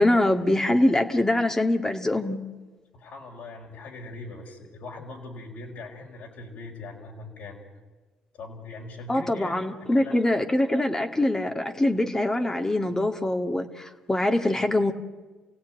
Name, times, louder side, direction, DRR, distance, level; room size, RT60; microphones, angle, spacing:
voice 1, 0.0-2.4 9.1-14.9, left 1 dB, 20° left, 4 dB, 2.0 m, -23 dB
voice 2, 2.9-7.6 8.3-9.5 9.9-10.2, left 2 dB, 75° left, -2 dB, 5.2 m, -41 dB
28.5 x 16.5 x 9.3 m, 1.3 s
supercardioid pair, 65°, 3 cm